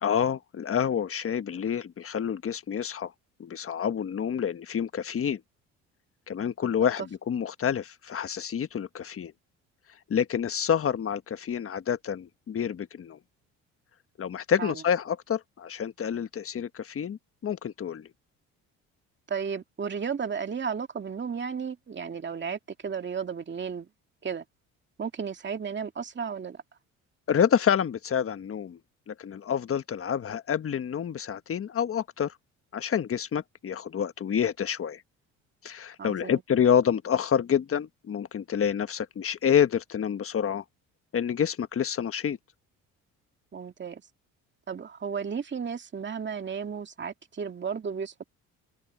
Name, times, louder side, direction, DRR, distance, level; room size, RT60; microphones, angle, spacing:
voice 1, 0.0-3.1 3.4-5.4 6.3-9.3 10.1-13.2 14.2-18.1 27.3-28.8 29.1-32.3 32.7-35.0 35.6-40.6 41.1-42.4, left 8 dB, 40° left, 1.3 m, -28 dB
voice 2, 19.3-23.9 24.2-24.4 25.0-26.6 36.0-36.4 43.5-44.0 44.7-48.2, right 6 dB, 35° right, 2.2 m, -34 dB
supercardioid pair, 80°, 34 cm